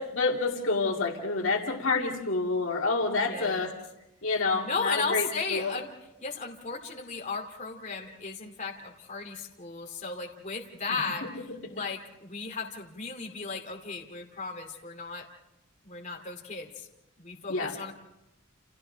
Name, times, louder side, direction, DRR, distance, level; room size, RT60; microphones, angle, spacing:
voice 1, 0.0-3.7 4.2-5.7 17.5-17.7, left 3 dB, 65° left, 0 dB, 2.5 m, -28 dB
voice 2, 3.3-3.7 4.6-5.9 6.2-15.2 15.8-16.9 17.2-17.9, left 4 dB, 35° left, 1 dB, 2.6 m, -35 dB
30.0 x 29.5 x 3.4 m, 0.90 s
head